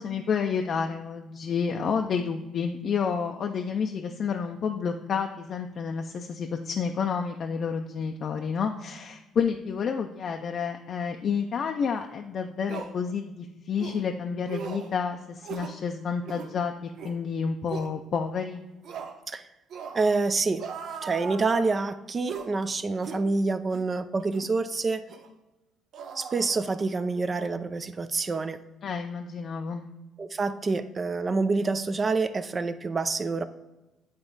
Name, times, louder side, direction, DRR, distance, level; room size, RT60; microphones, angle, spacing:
voice 1, 0.0-18.6 28.8-29.9, left 6 dB, 55° left, 4 dB, 0.4 m, -30 dB
sound 1, 12.0-12.1 12.7-12.9 13.8-14.0 14.5-14.9 15.4-15.8 16.2-16.5 16.9-17.2 17.7-17.9 18.8-19.2 19.7-20.1 20.6-21.8 22.3-22.5 23.0-23.2 23.7-23.9 24.3-24.5 25.1-25.3 25.9-27.0 27.3-27.5, right 6 dB, 65° right, 0.7 m, -39 dB
voice 2, 19.9-20.6 21.0-25.0 26.2-28.6 30.2-33.4, right 3 dB, 35° right, 11 dB, 0.5 m, -27 dB
8.8 x 3.5 x 3.9 m, 1.1 s
supercardioid pair, 80°, 0 cm